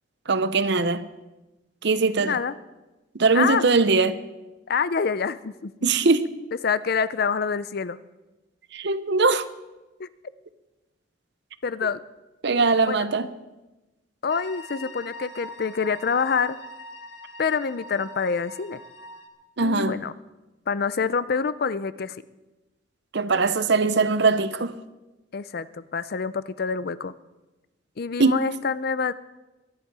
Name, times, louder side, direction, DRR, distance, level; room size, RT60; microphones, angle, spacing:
voice 1, 0.3-1.0 1.8-2.4 3.2-4.2 5.8-6.3 8.7-9.5 12.4-13.3 19.6-20.0 23.1-24.7 28.2-28.4, right 4 dB, 60° right, 0.8 m, -21 dB
voice 2, 2.2-2.5 3.3-3.6 4.7-5.7 6.6-8.0 10.0-10.1 11.6-12.0 12.9-13.1 14.2-16.6 17.4-18.8 19.6-20.1 20.7-22.2 25.3-27.1 28.0-29.1, left 5 dB, 50° left, 0.5 m, -26 dB
sound 1, 14.3-19.3, equal, 70° left, 1.7 m, -42 dB
22.0 x 11.0 x 4.8 m
head